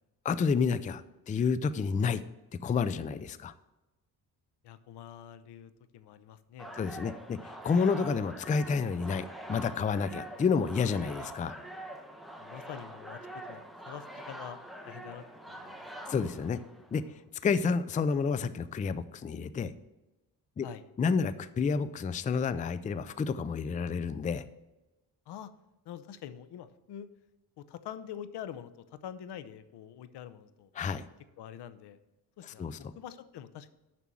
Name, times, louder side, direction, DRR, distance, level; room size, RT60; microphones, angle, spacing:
voice 1, 0.2-2.2 2.6-3.5 6.7-11.6 16.1-16.6 16.9-17.0 17.4-19.7 20.6-20.7 21.0-24.5 30.8-31.1 32.5-32.8, left 5 dB, 20° left, 14 dB, 0.4 m, -30 dB
voice 2, 4.6-6.8 12.4-13.2 13.5-14.6 14.8-16.1 20.6-20.8 25.3-25.5 25.9-27.1 27.6-30.7 31.4-32.0 32.4-33.7, left 10 dB, 80° left, 13 dB, 0.8 m, -45 dB
sound 1, 6.6-17.1, right 1 dB, ahead, 1.0 m, -45 dB
6.9 x 6.1 x 7.5 m, 1.0 s
cardioid pair, 110°, 40 cm